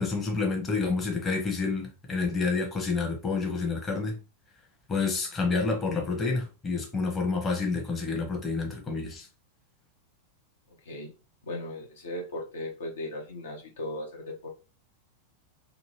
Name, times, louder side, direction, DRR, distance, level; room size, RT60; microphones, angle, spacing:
voice 1, 0.0-4.2 4.9-9.3, left 4 dB, 20° left, 0.9 m, -29 dB
voice 2, 10.8-11.1 11.4-14.5, left 1 dB, 65° left, 0.8 m, -37 dB
2.6 x 2.6 x 3.1 m
figure-of-eight pair, 90°, 0 cm